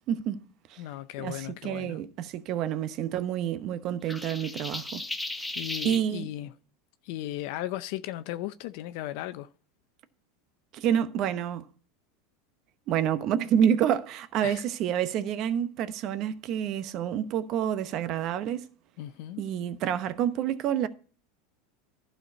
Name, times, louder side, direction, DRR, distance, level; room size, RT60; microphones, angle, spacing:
voice 1, 0.1-0.4 0.7-0.8 1.2-5.0 5.8-6.3 10.7-11.6 12.9-18.7 19.4-20.9, right 9 dB, 50° right, 0.9 m, -28 dB
voice 2, 0.8-2.0 5.5-6.5 7.0-9.5 14.4-14.6 19.0-19.4, left 14 dB, 65° left, 0.5 m, -36 dB
sound 1, 4.1-6.0, left 1 dB, 5° left, 1.0 m, -35 dB
12.0 x 4.5 x 6.8 m
hypercardioid pair, 105°, 0 cm